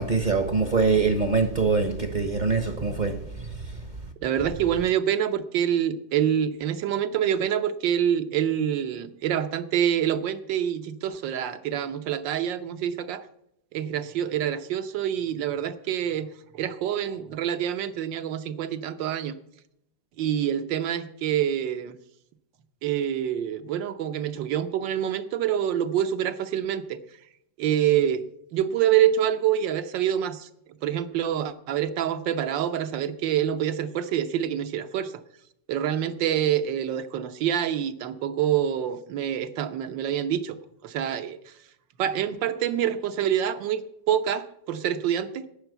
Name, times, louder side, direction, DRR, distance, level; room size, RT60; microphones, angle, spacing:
voice 1, 0.0-3.8, right 4 dB, 35° right, 0.7 m, -24 dB
voice 2, 4.2-13.2 13.7-19.4 20.2-22.0 22.8-27.0 27.6-28.2 28.5-30.5 30.8-35.1 35.7-41.5 42.0-45.5, right 10 dB, 75° right, 1.6 m, -26 dB
12.0 x 8.9 x 8.0 m
omnidirectional pair, 2.0 m